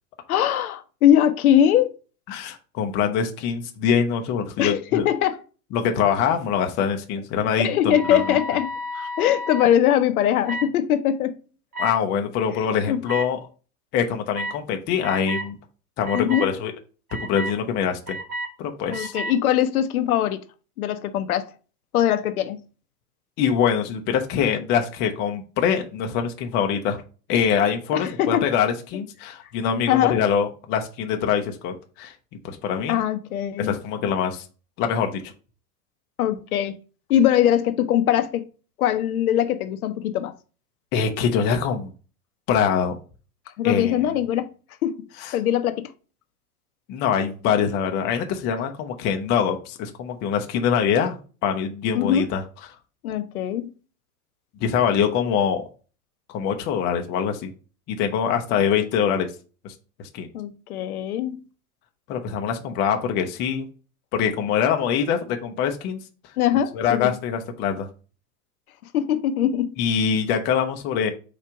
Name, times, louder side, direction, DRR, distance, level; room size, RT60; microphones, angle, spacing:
voice 1, 0.3-1.9 4.6-5.4 7.6-8.7 9.2-11.4 12.5-13.0 16.1-16.5 18.9-20.5 20.8-21.5 21.9-22.6 27.9-28.5 29.9-30.2 32.9-33.8 36.2-36.8 37.1-38.5 38.8-40.3 43.6-44.5 44.8-45.0 45.3-45.9 51.9-52.3 53.0-53.7 60.3-61.4 66.4-67.1 68.9-69.7, left 10 dB, 65° left, 0.7 m, -21 dB
voice 2, 2.3-5.0 5.7-8.2 11.8-13.4 13.9-15.6 16.0-16.7 17.2-18.2 18.6-19.1 23.4-27.0 27.3-32.1 32.4-33.0 33.6-34.4 34.8-35.3 40.9-41.9 42.5-43.0 43.6-44.0 45.2-45.3 46.9-52.4 54.6-55.6 56.3-57.5 57.9-59.3 59.6-59.7 60.0-60.3 62.1-63.7 64.1-66.0 66.7-67.9 69.8-71.1, left 7 dB, 25° left, 0.5 m, -24 dB
sound 1, 7.9-9.7 10.4-10.7 11.7-11.9 13.1-13.2 14.3-14.6 15.0-15.5 16.0-16.5 17.1-17.5 18.1-18.5 18.9-19.3, equal, 70° right, 1.8 m, -31 dB
4.5 x 2.4 x 4.5 m
hypercardioid pair, 120°, 46 cm